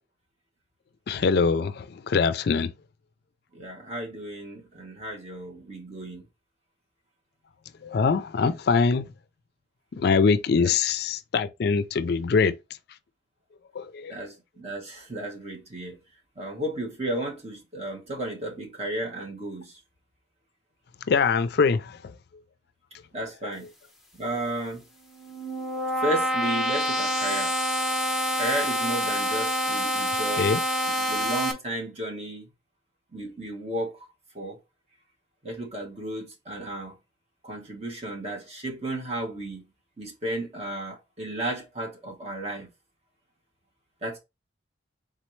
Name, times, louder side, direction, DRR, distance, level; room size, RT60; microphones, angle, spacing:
voice 1, 1.1-2.7 7.8-9.1 9.9-12.6 13.7-14.2 21.1-22.0 30.4-30.6, left 5 dB, 55° left, 0.4 m, -23 dB
voice 2, 3.5-6.3 10.6-10.7 14.1-16.0 16.4-19.8 23.1-23.7 24.2-24.9 26.0-27.5 28.4-30.5 30.8-32.5 33.1-33.9 34.3-34.6 35.4-36.9 37.4-39.6 40.0-42.7 44.0-44.2, right 1 dB, 35° right, 1.2 m, -33 dB
sound 1, 25.0-31.5, equal, ahead, 0.8 m, -27 dB
4.1 x 3.7 x 3.1 m
head